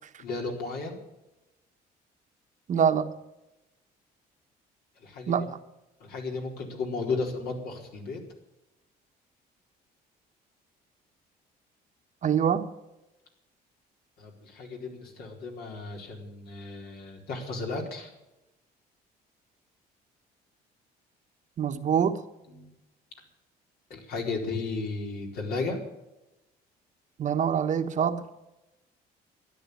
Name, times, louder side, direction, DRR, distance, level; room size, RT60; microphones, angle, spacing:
voice 1, 0.2-1.0 5.0-5.5 6.0-8.2 14.2-18.1 22.5-22.7 23.9-25.8, left 3 dB, 65° left, 1 dB, 4.4 m, -34 dB
voice 2, 2.7-3.1 5.3-5.6 12.2-12.7 21.6-22.2 27.2-28.3, right 8 dB, 45° right, 8 dB, 1.2 m, -25 dB
13.0 x 10.5 x 8.7 m, 0.95 s
cardioid pair, 110°, 17 cm